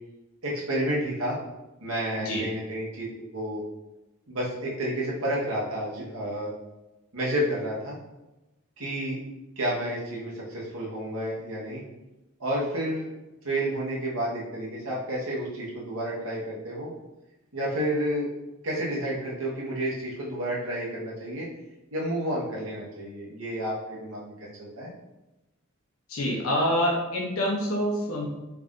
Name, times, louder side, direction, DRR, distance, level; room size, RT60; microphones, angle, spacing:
voice 1, 0.4-1.4 1.8-3.6 4.3-6.5 7.1-8.0 8.8-9.2 9.6-11.8 12.4-13.1 13.4-16.9 17.5-18.3 18.6-21.5 21.9-24.9, right 1 dB, 80° right, -5 dB, 1.2 m, -30 dB
voice 2, 26.1-28.3, equal, 80° left, -3 dB, 0.8 m, -26 dB
3.4 x 2.5 x 3.6 m, 1.0 s
head